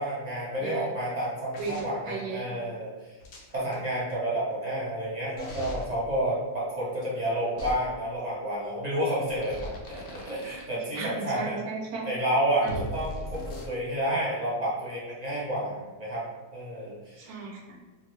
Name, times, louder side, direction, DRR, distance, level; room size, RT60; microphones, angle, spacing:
voice 1, 0.0-3.1 3.5-11.6 12.0-16.2 16.5-17.3, right 1 dB, 35° right, -7 dB, 0.7 m, -30 dB
sound 1, 1.5-1.8 3.2-3.8 5.4-5.9 7.6-7.7 9.3-10.6 12.7-13.6, left 1 dB, 75° left, 0.6 m, -38 dB
voice 2, 1.5-2.5 10.9-12.1 12.6-12.8 17.2-17.8, right 4 dB, 75° right, 1 dB, 1.0 m, -35 dB
2.6 x 2.4 x 3.2 m, 1.2 s
omnidirectional pair, 1.7 m